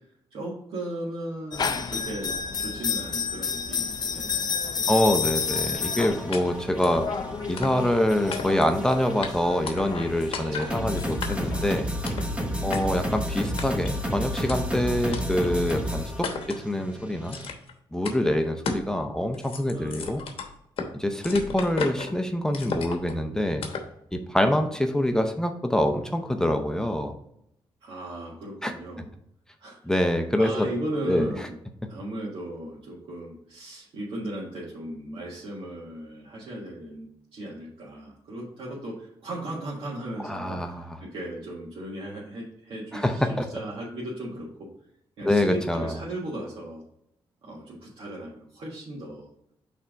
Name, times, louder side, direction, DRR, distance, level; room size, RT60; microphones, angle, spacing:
voice 1, 0.3-2.3 2.6-4.9 7.1-7.3 10.4-11.0 12.0-12.8 15.8-16.0 18.2-18.5 19.6-20.3 21.2-21.4 27.8-29.1 29.6-29.8 30.4-31.6 31.9-43.3 43.5-44.7 45.2-46.8 47.4-49.3, right 1 dB, 70° right, -6 dB, 1.6 m, -37 dB
sound 1, 1.5-11.7, left 6 dB, 45° left, 0.5 m, -31 dB
voice 2, 4.9-7.1 7.5-11.9 12.6-17.4 17.9-20.2 20.9-23.6 24.1-27.1 28.6-28.7 29.8-30.7 31.0-31.3 40.2-40.9 42.9-43.5 45.2-45.9, left 1 dB, 5° left, 6 dB, 0.7 m, -25 dB
sound 2, 5.4-17.5, equal, 15° right, 1.2 m, -32 dB
sound 3, 6.3-6.4 6.8-7.0 7.6-8.0 8.3-8.8 9.2-9.3 9.7-10.1 10.3-10.7 11.2-11.6 12.0-12.3 12.7-12.8 13.6-13.9 14.5-14.6 15.1-15.2 15.7-15.8 16.2-16.6 17.3-17.7 18.0-18.2 18.6-18.9 19.2-20.9 21.2-22.1 22.5-23.1 23.6-23.9, left 5 dB, 75° left, 1.0 m, -34 dB
5.7 x 3.5 x 5.0 m, 0.76 s
cardioid pair, 95°, 10 cm